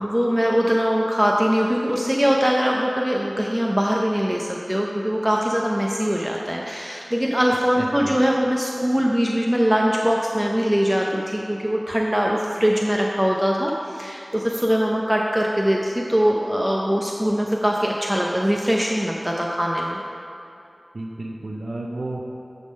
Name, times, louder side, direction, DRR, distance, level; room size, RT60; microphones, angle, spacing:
voice 1, 0.0-20.0, equal, 15° right, -1 dB, 0.6 m, -22 dB
voice 2, 7.8-8.2 20.9-22.2, right 2 dB, 85° right, -1 dB, 0.6 m, -32 dB
10.0 x 3.6 x 5.2 m, 2.8 s
wide cardioid pair, 40°, 0 cm